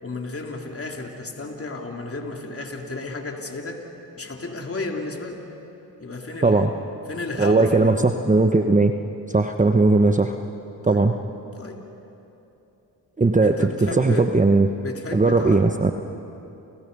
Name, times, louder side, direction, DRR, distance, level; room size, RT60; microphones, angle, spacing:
voice 1, 0.0-3.8 4.2-5.4 6.0-6.7 7.1-8.2 10.8-11.1 11.6-11.8 13.4-14.3 14.8-15.6, left 2 dB, 30° left, 1 dB, 3.6 m, -32 dB
voice 2, 7.4-8.9 9.3-10.4 10.9-11.1 13.2-14.7 15.1-15.9, right 3 dB, 15° right, 6 dB, 1.2 m, -18 dB
29.5 x 29.0 x 5.5 m, 2.9 s
supercardioid pair, 55°, 44 cm